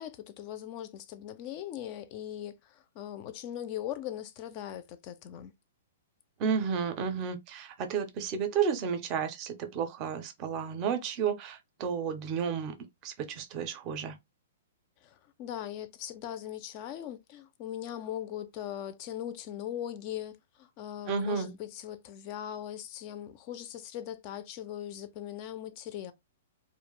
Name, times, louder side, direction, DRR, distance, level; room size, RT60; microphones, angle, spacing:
voice 1, 0.0-5.5 15.0-26.1, left 11 dB, 35° left, 0.3 m, -40 dB
voice 2, 6.4-12.7 13.0-14.2 21.1-21.5, right 6 dB, 30° right, 0.5 m, -32 dB
2.4 x 2.1 x 3.0 m
hypercardioid pair, 160°, 0 cm